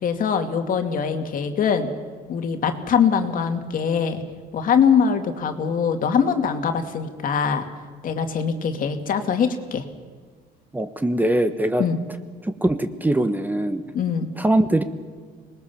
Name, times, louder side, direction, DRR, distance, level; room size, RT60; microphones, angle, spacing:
voice 1, 0.0-1.9 2.3-4.2 4.5-7.7 8.0-9.8 11.8-12.0 13.9-14.3, left 6 dB, 55° left, 6 dB, 2.5 m, -22 dB
voice 2, 10.7-11.8 12.4-13.8 14.4-14.8, right 1 dB, 10° right, 9 dB, 1.3 m, -22 dB
26.0 x 20.0 x 7.2 m, 1.5 s
cardioid pair, 110°, 17 cm